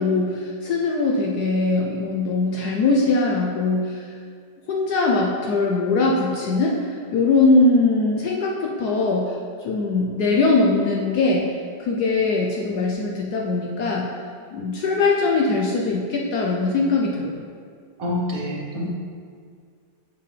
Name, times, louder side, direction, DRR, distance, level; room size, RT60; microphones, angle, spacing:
voice 1, 0.0-4.1 4.7-6.7 7.1-9.3 9.6-11.4 11.8-14.1 14.5-17.4, left 3 dB, 70° left, -1 dB, 1.0 m, -21 dB
voice 2, 18.0-18.9, left 1 dB, 55° right, -4 dB, 1.2 m, -26 dB
7.4 x 5.5 x 3.3 m, 2.1 s
omnidirectional pair, 2.1 m